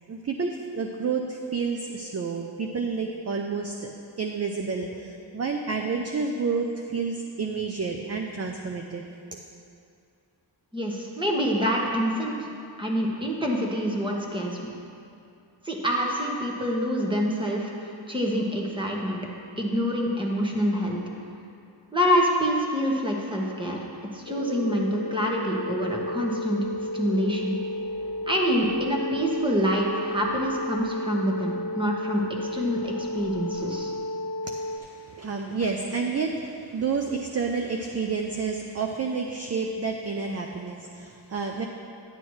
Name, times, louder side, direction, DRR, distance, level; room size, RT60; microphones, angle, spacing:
voice 1, 0.1-3.9 4.2-9.0 9.3-9.4 34.4-41.7, right 4 dB, 35° right, 3 dB, 0.5 m, -30 dB
voice 2, 10.7-12.5 12.8-14.6 15.6-19.2 19.6-21.0 21.9-23.8 24.1-26.7 26.9-27.6 28.3-33.9, equal, 10° right, -2 dB, 1.2 m, -26 dB
sound 1, 24.3-34.8, left 1 dB, 45° left, 0.7 m, -33 dB
11.0 x 8.8 x 3.2 m, 2.5 s
wide cardioid pair, 120°, 43 cm